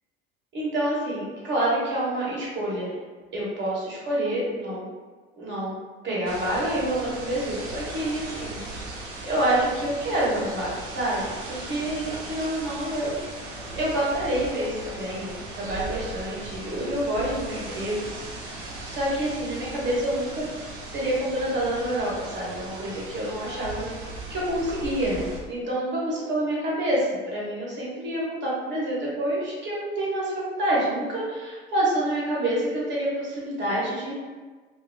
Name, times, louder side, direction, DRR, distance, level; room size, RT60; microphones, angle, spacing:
voice 1, 0.5-3.0 3.3-4.9 5.4-5.8 6.0-8.9 9.2-13.2 13.8-18.0 18.8-30.3 30.6-34.1, right 1 dB, 40° right, -6 dB, 1.1 m, -27 dB
sound 1, 6.3-25.4, right 2 dB, 60° right, 0.6 m, -38 dB
2.9 x 2.1 x 2.3 m, 1.4 s
figure-of-eight pair, 60°, 30 cm